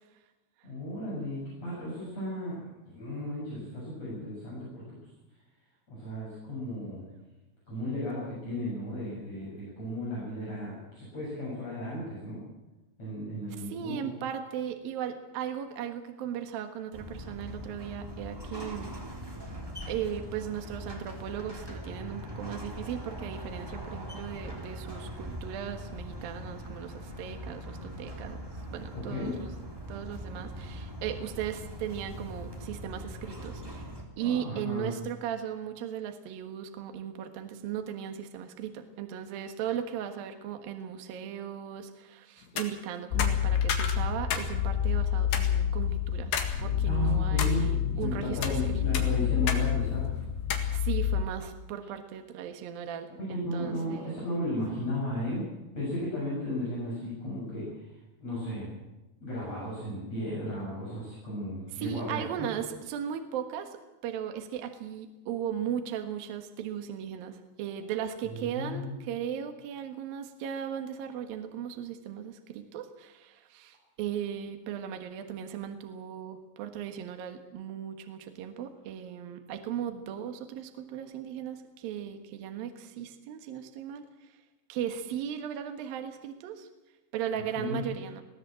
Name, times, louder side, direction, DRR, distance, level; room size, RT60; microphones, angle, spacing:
voice 1, 0.6-5.0 5.9-7.0 7.7-12.4 13.0-14.1 29.1-29.3 34.2-34.9 46.8-50.0 53.2-55.4 55.7-57.8 58.2-58.7 59.2-62.2 68.2-68.9 87.6-87.8, left 1 dB, 30° left, -7 dB, 8.5 m, -35 dB
voice 2, 13.6-18.9 19.9-33.8 34.2-49.1 50.7-54.2 61.7-84.3 84.7-86.7 87.1-88.2, right 9 dB, 65° right, 6 dB, 2.6 m, -37 dB
sound 1, 16.9-34.0, equal, 5° right, 2.3 m, -41 dB
sound 2, 42.4-42.7 43.2-44.5 44.8-44.9 45.3-45.5 46.3-46.5 47.0-47.6 48.2-48.6 48.9-49.6 49.9-50.0 50.5-50.7, left 7 dB, 60° left, 3.3 m, -32 dB
sound 3, 43.1-51.2, left 9 dB, 75° left, 3.6 m, -28 dB
21.5 x 16.5 x 7.7 m, 1.0 s
omnidirectional pair, 5.8 m